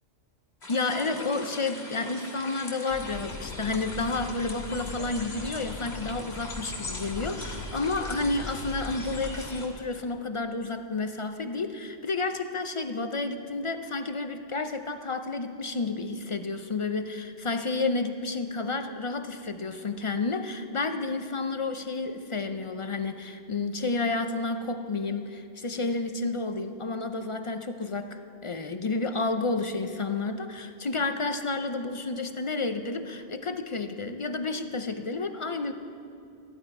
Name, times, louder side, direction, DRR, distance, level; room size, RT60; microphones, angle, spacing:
sound 1, 0.6-9.7, left 2 dB, 60° left, 2.0 m, -42 dB
voice 1, 0.7-35.7, left 3 dB, 40° left, 8 dB, 0.4 m, -31 dB
sound 2, 2.9-9.4, left 2 dB, 90° left, 1.7 m, -40 dB
15.0 x 11.5 x 4.7 m, 2.6 s
omnidirectional pair, 1.2 m